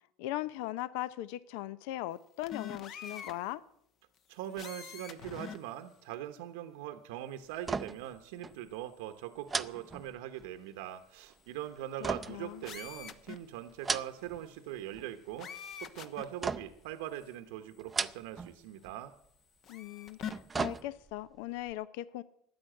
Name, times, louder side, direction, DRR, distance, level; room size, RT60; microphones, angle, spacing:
voice 1, 0.2-3.6 12.3-12.6 19.7-22.2, left 15 dB, 70° left, 0.6 m, -39 dB
sound 1, 2.4-3.3 4.5-5.6 6.1-6.2 12.6-13.4 15.4-16.2 17.2-17.3 19.6-20.3, left 8 dB, 40° left, 1.0 m, -43 dB
voice 2, 4.3-15.5 15.8-19.1, right 12 dB, 80° right, 0.9 m, -42 dB
sound 2, 7.6-8.2 8.4-8.6 9.5-10.6 12.0-13.1 13.7-14.5 14.8-15.3 16.4-16.9 17.8-18.6 18.8-19.0 20.1-21.2 21.7-21.8, right 4 dB, 15° right, 0.5 m, -37 dB
13.0 x 9.6 x 7.7 m
supercardioid pair, 130°, 0 cm